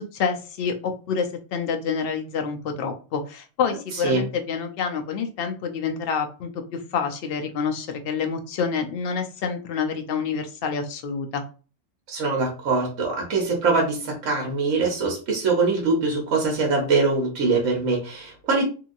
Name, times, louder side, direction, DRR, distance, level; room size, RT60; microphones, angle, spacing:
voice 1, 0.0-11.4, left 6 dB, 60° left, 5 dB, 0.7 m, -28 dB
voice 2, 12.1-18.6, right 3 dB, 75° right, -1 dB, 1.1 m, -23 dB
2.9 x 2.7 x 2.5 m, 0.36 s
omnidirectional pair, 1.3 m